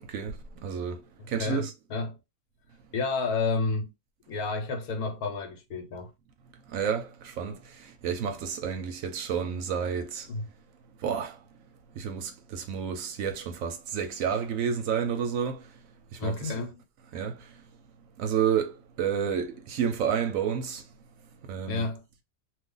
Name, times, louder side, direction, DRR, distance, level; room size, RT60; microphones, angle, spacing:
voice 1, 0.6-1.7 6.7-10.3 11.0-11.4 12.0-15.7 16.1-16.6 17.1-17.5 18.2-20.8 21.5-21.9, right 7 dB, 70° right, 0.9 m, -30 dB
voice 2, 2.9-3.9 4.3-6.1 10.3-10.4 16.2-16.8 21.7-22.0, left 3 dB, 75° left, 1.2 m, -30 dB
2.4 x 2.4 x 3.7 m
omnidirectional pair, 1.6 m